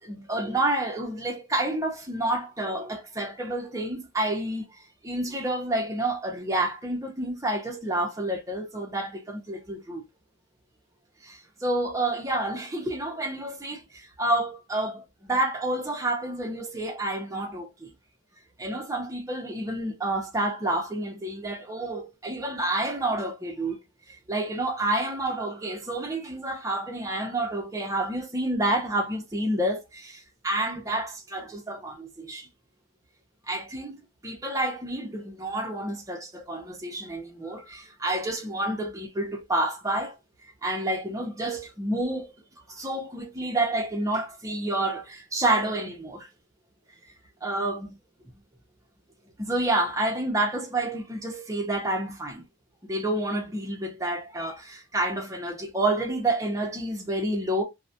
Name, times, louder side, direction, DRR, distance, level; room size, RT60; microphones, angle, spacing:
voice 1, 0.0-4.6 5.0-10.0 11.2-17.9 18.6-23.8 24.3-32.5 33.5-34.0 34.2-40.2 40.6-42.3 42.7-46.3 47.4-47.9 49.4-52.4 52.8-57.6, right 1 dB, 15° right, 0.6 m, -29 dB
2.3 x 2.1 x 2.6 m
head